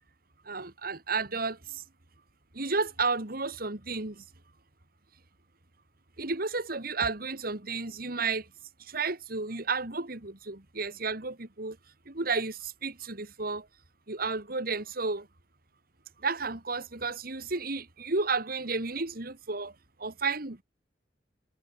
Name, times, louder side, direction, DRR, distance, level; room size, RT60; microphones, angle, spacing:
voice 1, 0.4-1.8 2.5-4.2 6.2-8.5 8.8-11.8 12.1-13.7 14.1-15.3 16.2-20.6, right 4 dB, 55° right, 2.6 m, -32 dB
head